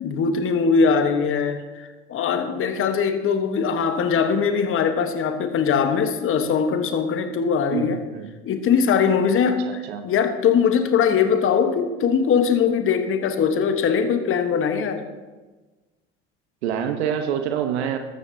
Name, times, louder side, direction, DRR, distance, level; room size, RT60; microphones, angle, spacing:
voice 1, 0.0-8.0 8.4-15.1, left 6 dB, 40° left, 8 dB, 1.2 m, -21 dB
voice 2, 7.7-8.3 9.6-10.0 16.6-18.0, right 8 dB, 80° right, 7 dB, 1.1 m, -26 dB
15.0 x 12.5 x 2.8 m, 1.2 s
hypercardioid pair, 75°, 33 cm